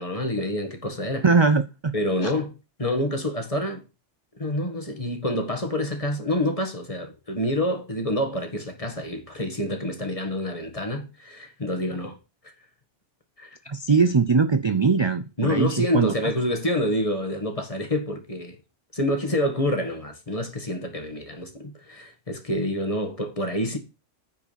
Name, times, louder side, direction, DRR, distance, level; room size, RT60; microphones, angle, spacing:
voice 1, 0.0-1.3 1.9-2.5 2.8-3.8 4.4-12.2 13.4-13.6 15.4-18.6 18.9-23.8, left 1 dB, 30° left, 1.8 m, -27 dB
voice 2, 1.2-1.9 2.2-2.3 13.7-16.1, right 4 dB, 40° right, 0.4 m, -21 dB
9.2 x 4.9 x 6.9 m
omnidirectional pair, 1.3 m